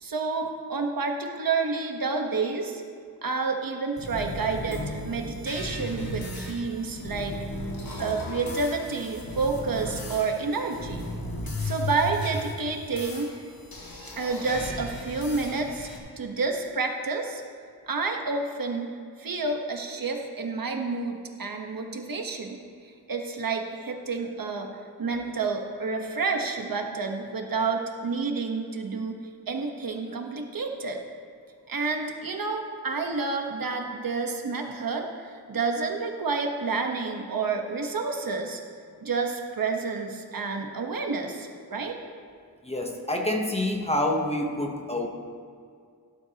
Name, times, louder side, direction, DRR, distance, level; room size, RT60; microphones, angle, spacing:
voice 1, 0.0-2.8 3.2-7.4 8.0-11.1 11.6-13.3 14.1-15.9 16.2-17.4 17.9-18.9 19.2-24.7 25.0-29.2 29.5-31.0 31.7-38.6 39.0-42.0, right 4 dB, 55° right, 3 dB, 1.3 m, -29 dB
sound 1, 4.0-16.0, left 1 dB, 60° left, 2.1 m, -36 dB
voice 2, 42.6-45.1, left 1 dB, 15° left, 1 dB, 1.0 m, -27 dB
17.5 x 11.0 x 2.9 m, 2.3 s
wide cardioid pair, 140°, 40 cm